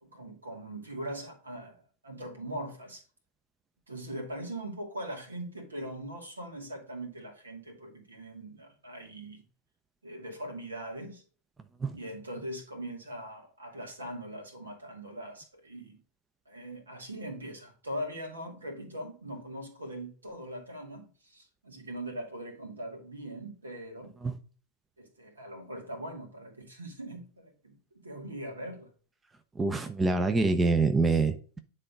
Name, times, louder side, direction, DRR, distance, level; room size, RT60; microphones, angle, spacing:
voice 1, 0.0-3.0 3.9-9.4 10.0-11.2 11.9-16.0 16.5-24.1 25.0-27.8 28.0-28.9, right 1 dB, 75° right, 2.3 m, -41 dB
voice 2, 29.6-31.6, right 3 dB, 15° right, 0.6 m, -25 dB
9.8 x 3.8 x 5.1 m
figure-of-eight pair, 90°, 0 cm